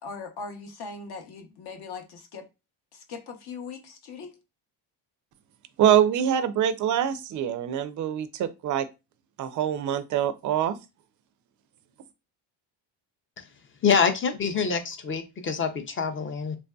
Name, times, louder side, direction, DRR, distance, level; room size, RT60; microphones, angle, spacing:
voice 1, 0.0-2.5 2.9-4.4, left 4 dB, 50° left, 0.8 m, -40 dB
voice 2, 5.8-8.9 9.4-10.8, right 10 dB, 40° right, 0.4 m, -24 dB
voice 3, 13.8-16.6, left 6 dB, 25° left, 0.5 m, -25 dB
3.2 x 2.6 x 2.2 m
cardioid pair, 95°, 49 cm